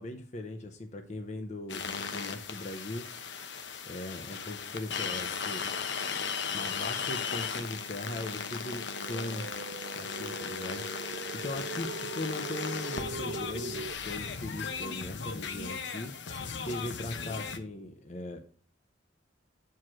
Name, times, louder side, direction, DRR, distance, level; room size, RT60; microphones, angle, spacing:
voice 1, 0.0-3.1 3.9-5.7 6.5-9.6 10.0-10.8 11.3-16.1 16.6-18.4, left 1 dB, 40° left, 5 dB, 0.7 m, -39 dB
sound 1, 1.7-17.6, left 6 dB, 70° left, 0.8 m, -37 dB
sound 2, 8.9-13.9, right 4 dB, 50° right, 0.3 m, -41 dB
7.5 x 4.7 x 6.1 m, 0.44 s
head